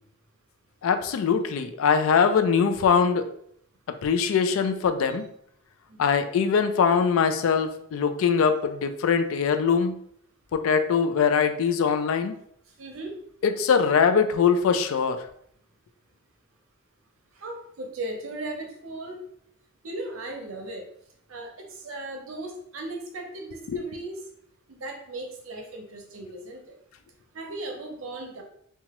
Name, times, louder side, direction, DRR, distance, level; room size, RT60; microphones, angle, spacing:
voice 1, 0.8-3.3 3.9-5.3 6.0-10.0 10.5-12.4 13.4-15.2 23.7-23.8, left 6 dB, 70° left, 9 dB, 0.3 m, -22 dB
voice 2, 12.8-13.2 17.4-19.2 19.8-20.8 21.3-24.2 24.7-26.8 27.3-28.4, right 2 dB, 70° right, 2 dB, 0.6 m, -37 dB
2.9 x 2.3 x 2.9 m, 0.68 s
head